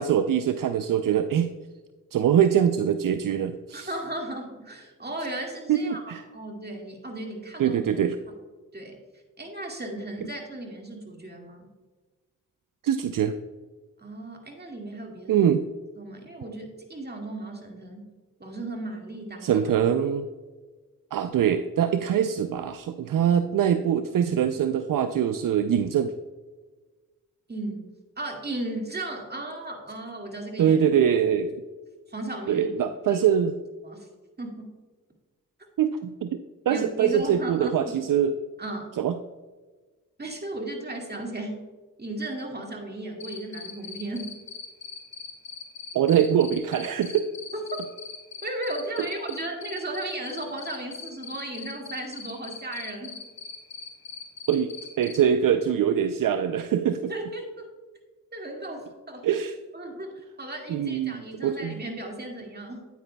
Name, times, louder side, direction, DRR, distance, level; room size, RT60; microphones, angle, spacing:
voice 1, 0.0-1.5 2.1-3.9 5.7-6.2 7.6-8.2 12.8-13.3 15.3-15.6 19.4-20.3 21.1-26.1 30.6-31.5 32.5-33.5 35.8-36.4 36.7-38.4 39.0-39.1 45.9-47.3 49.0-49.1 54.5-54.7 55.0-57.1 59.2-59.5 60.7-61.8, right 9 dB, 70° right, 9 dB, 0.5 m, -23 dB
voice 2, 3.7-7.8 8.3-8.4 8.7-9.0 9.4-11.7 14.0-15.5 16.0-18.1 18.4-19.7 27.5-27.9 28.2-30.8 32.1-33.3 33.8-34.1 34.4-34.7 36.7-37.9 38.6-38.9 40.2-41.6 42.0-44.3 47.5-47.8 48.4-53.2 57.1-57.7 58.3-59.3 59.7-62.8, right 1 dB, 30° right, 1 dB, 2.0 m, -35 dB
Cricket, 43.2-55.2, left 5 dB, 30° left, 1.8 m, -40 dB
9.1 x 9.1 x 2.2 m, 1.3 s
cardioid pair, 45°, 34 cm